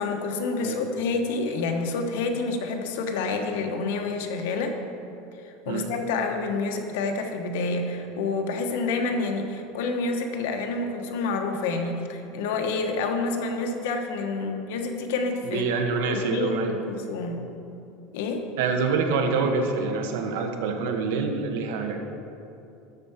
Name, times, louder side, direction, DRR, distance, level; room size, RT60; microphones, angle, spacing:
voice 1, 0.0-4.7 5.4-15.7 16.0-17.4 18.1-18.4, left 3 dB, 75° left, 4 dB, 1.2 m, -28 dB
voice 2, 15.4-16.7 18.6-22.0, right 4 dB, 80° right, 4 dB, 1.3 m, -26 dB
12.0 x 4.7 x 7.2 m, 2.7 s
supercardioid pair, 160°, 0 cm